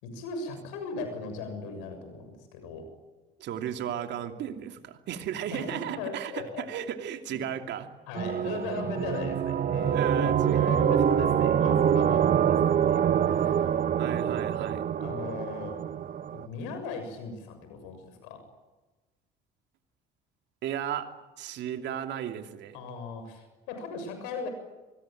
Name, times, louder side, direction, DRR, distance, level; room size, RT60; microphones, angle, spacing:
voice 1, 0.0-2.9 5.5-6.7 8.1-13.8 14.2-14.4 15.0-15.8 16.3-18.4 22.7-24.5, left 4 dB, 85° left, 8 dB, 6.8 m, -38 dB
voice 2, 3.4-7.9 9.9-11.0 14.0-14.9 20.6-22.8, right 9 dB, 65° right, 6 dB, 2.8 m, -35 dB
sound 1, 8.2-16.5, right 9 dB, 45° right, 1.3 m, -25 dB
25.0 x 22.0 x 9.1 m, 1.2 s
supercardioid pair, 75°, 19 cm